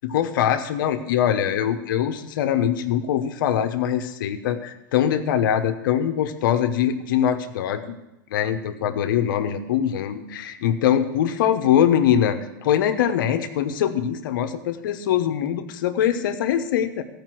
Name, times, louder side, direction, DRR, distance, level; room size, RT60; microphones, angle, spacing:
voice 1, 0.0-7.9 8.3-17.0, left 9 dB, 75° left, 8 dB, 1.0 m, -22 dB
14.0 x 5.2 x 7.7 m, 0.93 s
hypercardioid pair, 120°, 11 cm